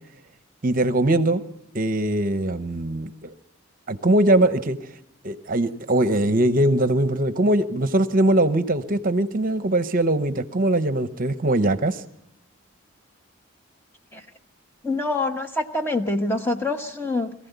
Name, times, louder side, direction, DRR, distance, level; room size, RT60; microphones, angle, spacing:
voice 1, 0.6-1.4 1.7-3.3 3.9-4.8 5.2-12.0, right 1 dB, 40° right, 11 dB, 0.8 m, -21 dB
voice 2, 14.8-17.3, left 2 dB, 10° left, 5 dB, 1.0 m, -25 dB
22.5 x 15.0 x 8.1 m, 0.82 s
head